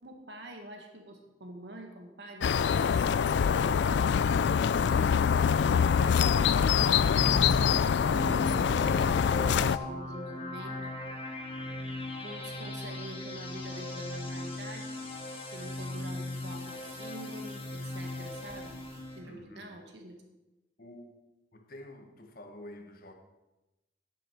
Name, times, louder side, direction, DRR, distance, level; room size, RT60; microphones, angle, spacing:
voice 1, 0.0-3.8 4.7-5.2 5.5-10.8 12.2-15.0 15.4-18.8 19.2-20.2, right 1 dB, 65° right, 3 dB, 1.8 m, -46 dB
sound 1, 2.4-9.8, left 7 dB, 65° left, 0.3 m, -25 dB
sound 2, 6.6-19.2, left 2 dB, 30° left, 2.5 m, -38 dB
voice 2, 19.2-19.8 20.8-21.1 21.5-23.1, left 1 dB, 50° left, 5 dB, 1.4 m, -48 dB
10.5 x 10.5 x 4.6 m, 1.0 s
head